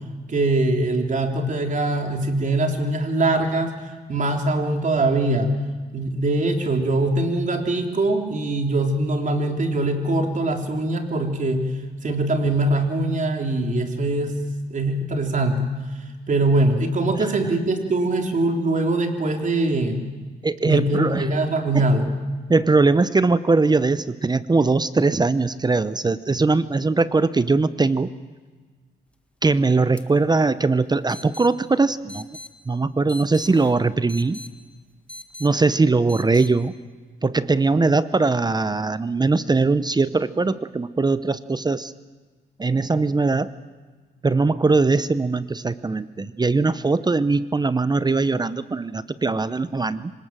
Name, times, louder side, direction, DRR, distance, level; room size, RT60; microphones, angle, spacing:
voice 1, 0.3-3.7 4.1-5.5 5.9-11.7 12.0-14.4 14.7-15.7 16.3-20.0 20.6-22.1, right 2 dB, 45° right, 4 dB, 3.7 m, -22 dB
voice 2, 20.4-21.3 21.7-21.8 22.5-28.1 29.4-32.3 32.7-34.4 35.4-36.7 37.2-41.9 42.6-43.5 44.2-50.1, right 3 dB, 20° right, 15 dB, 0.8 m, -20 dB
sound 1, 30.0-30.1 30.3-30.4 31.1-31.5 32.1-32.5 33.1-34.5 35.1-35.5 36.1-36.5, left 1 dB, 5° left, 1.7 m, -39 dB
26.0 x 19.0 x 7.6 m, 1.4 s
cardioid pair, 80°, 19 cm